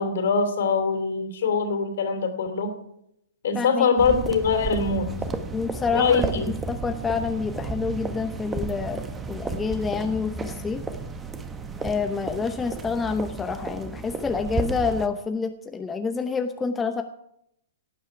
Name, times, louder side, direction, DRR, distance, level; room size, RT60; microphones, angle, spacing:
voice 1, 0.0-2.7 3.4-5.1 5.9-6.5, left 5 dB, 60° left, 7 dB, 3.1 m, -23 dB
voice 2, 3.5-4.2 5.5-9.0 9.3-10.8 11.8-17.0, left 5 dB, 15° left, 7 dB, 0.9 m, -28 dB
sound 1, 4.0-15.1, right 3 dB, 15° right, 1.4 m, -33 dB
18.0 x 10.0 x 4.9 m, 0.77 s
figure-of-eight pair, 115°, 0 cm